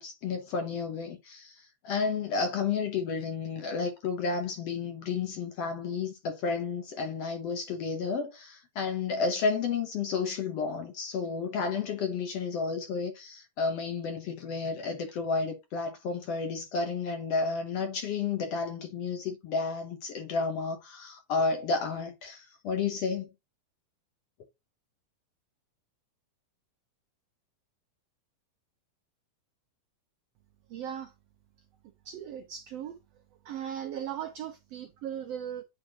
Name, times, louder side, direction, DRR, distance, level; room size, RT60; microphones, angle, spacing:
voice 1, 0.0-23.3, left 4 dB, 70° left, 1.6 m, -31 dB
voice 2, 30.7-31.1 32.0-33.0 33.4-35.6, right 9 dB, 90° right, 1.4 m, -37 dB
8.8 x 4.4 x 2.8 m
omnidirectional pair, 3.7 m